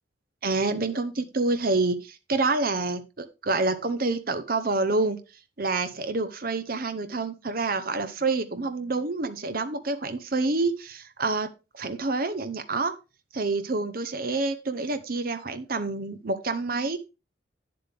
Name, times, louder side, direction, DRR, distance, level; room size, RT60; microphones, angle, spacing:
voice 1, 0.4-5.2 5.6-11.5 11.7-12.9 13.3-17.0, right 3 dB, 45° right, 10 dB, 0.8 m, -27 dB
8.7 x 7.8 x 3.4 m, 0.29 s
head